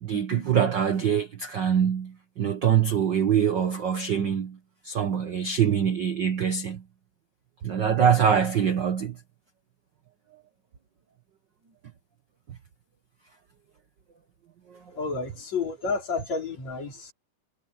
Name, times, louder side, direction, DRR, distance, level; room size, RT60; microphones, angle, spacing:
voice 1, 0.0-4.6 4.8-6.8 7.6-9.1 14.7-14.8, right 8 dB, 65° right, 1.1 m, -24 dB
voice 2, 15.0-17.1, left 4 dB, 50° left, 6.1 m, -30 dB
omnidirectional pair, 3.9 m